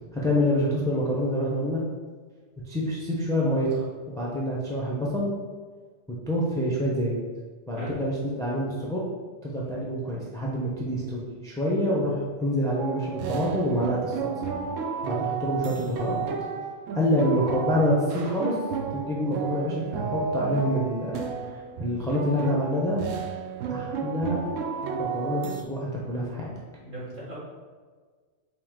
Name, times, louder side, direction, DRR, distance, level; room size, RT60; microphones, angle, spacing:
voice 1, 0.1-1.8 2.7-3.9 4.1-5.3 6.3-7.2 7.7-9.0 9.4-14.3 15.1-16.2 16.9-18.5 18.9-21.1 21.8-23.0 23.7-24.4 25.0-26.5, equal, 5° left, -5 dB, 0.3 m, -27 dB
sound 1, 12.8-25.6, right 6 dB, 75° right, 0.9 m, -32 dB
voice 2, 26.8-27.3, right 1 dB, 40° right, -9 dB, 1.8 m, -37 dB
4.9 x 2.8 x 3.6 m, 1.5 s
omnidirectional pair, 1.3 m